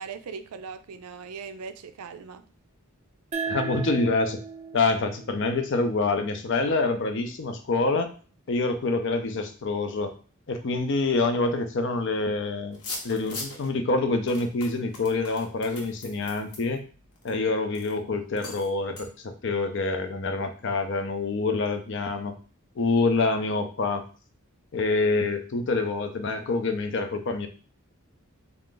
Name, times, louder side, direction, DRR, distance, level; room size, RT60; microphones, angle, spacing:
voice 1, 0.0-2.4, right 5 dB, 90° right, 10 dB, 0.4 m, -39 dB
sound 1, 3.3-6.5, right 5 dB, 30° right, 0.5 m, -36 dB
voice 2, 3.5-4.4 4.7-8.1 8.5-10.1 10.5-12.8 13.0-16.8 17.2-22.3 22.8-24.0 24.7-27.5, left 3 dB, 55° left, 8 dB, 0.5 m, -26 dB
sound 2, 12.7-13.7 14.3-17.3 17.7-17.9 18.4-18.7 19.0-19.1, left 3 dB, 85° left, 1.1 m, -40 dB
3.7 x 2.5 x 3.7 m, 0.38 s
head